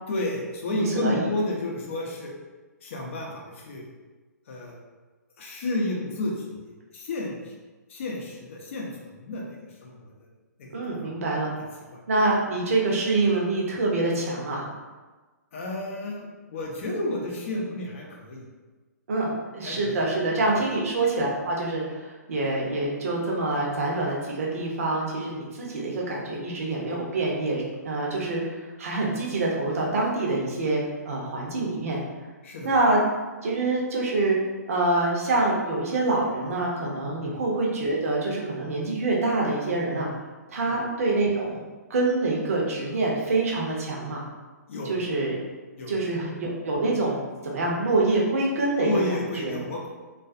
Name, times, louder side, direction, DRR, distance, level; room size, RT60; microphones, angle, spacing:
voice 1, 0.1-2.3 2.8-3.8 4.5-4.8 5.4-7.5 7.9-10.1 10.6-10.8 11.0-11.1 11.9-12.0 15.5-18.5 19.6-20.0 32.4-32.7 37.2-37.4 40.7-40.8 44.7-45.0 45.8-46.1 48.8-49.9, left 2 dB, 45° left, -1 dB, 0.6 m, -31 dB
voice 2, 0.7-1.2 10.7-11.5 12.1-14.6 19.1-32.0 32.6-33.0 33.4-34.4 34.7-40.1 40.5-41.6 41.9-44.2 44.9-45.4 45.9-47.2 47.4-48.9 49.4-49.7, right 2 dB, 55° right, -2 dB, 0.7 m, -26 dB
2.3 x 2.2 x 2.5 m, 1.3 s
figure-of-eight pair, 125°, 9 cm